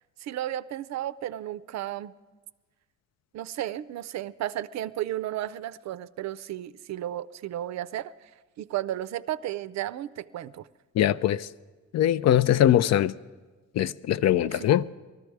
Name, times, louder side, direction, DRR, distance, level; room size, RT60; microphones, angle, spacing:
voice 1, 0.2-2.1 3.3-8.3 8.6-10.7 14.4-14.7, right 13 dB, 65° right, 0.5 m, -33 dB
voice 2, 11.0-11.5 11.9-13.1 13.8-14.8, left 11 dB, 60° left, 0.4 m, -22 dB
19.0 x 13.5 x 4.7 m
cardioid pair, 90°, 30 cm